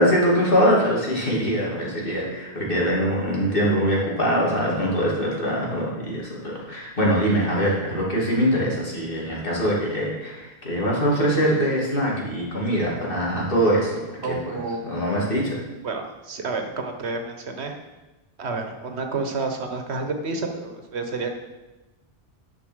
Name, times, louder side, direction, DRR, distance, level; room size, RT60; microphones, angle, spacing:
voice 1, 0.0-14.6 14.8-15.6, equal, 55° left, -4 dB, 3.0 m, -23 dB
voice 2, 14.2-14.8 15.3-15.4 15.8-17.7 18.4-21.3, right 3 dB, 85° right, 5 dB, 1.5 m, -30 dB
11.0 x 5.8 x 6.3 m, 1.1 s
omnidirectional pair, 1.1 m